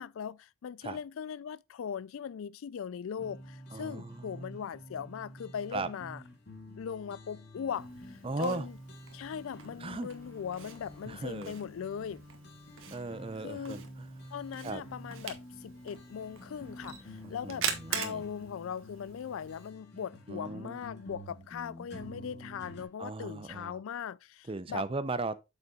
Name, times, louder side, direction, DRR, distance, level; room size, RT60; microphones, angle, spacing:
voice 1, 0.0-6.2 6.8-8.7 9.1-12.2 13.4-13.8 14.3-24.9, left 7 dB, 75° left, 0.3 m, -39 dB
sound 1, 3.2-22.9, equal, 55° left, 2.2 m, -49 dB
voice 2, 3.7-4.6 5.7-5.9 8.2-8.7 9.8-10.1 11.0-11.5 12.9-14.1 14.6-14.8 17.2-18.2 20.3-20.8 23.0-23.8 24.5-25.4, right 3 dB, 25° right, 0.6 m, -37 dB
sound 2, 7.3-7.5 9.6-12.5 15.1-15.4 15.7-18.5 21.0-21.1 21.4-23.7, left 1 dB, 15° left, 2.2 m, -64 dB
Camera, 7.7-19.7, right 8 dB, 70° right, 1.4 m, -43 dB
8.4 x 6.8 x 2.4 m
head